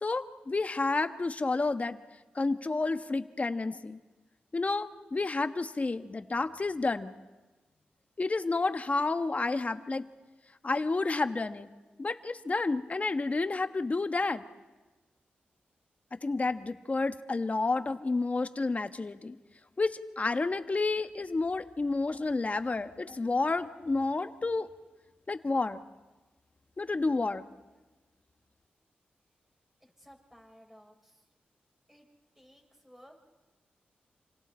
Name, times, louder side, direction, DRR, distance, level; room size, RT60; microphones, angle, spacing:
voice 1, 0.0-2.0 2.3-4.0 4.5-7.1 8.2-10.1 10.6-11.7 12.0-14.4 16.2-19.4 19.8-24.7 25.3-25.8 26.8-27.4, left 3 dB, 40° left, 9 dB, 1.3 m, -30 dB
voice 2, 29.8-31.2 31.9-32.1 32.4-33.3, equal, 10° right, 0 dB, 7.1 m, -57 dB
28.5 x 26.5 x 4.4 m, 1.2 s
cardioid pair, 50°, 4 cm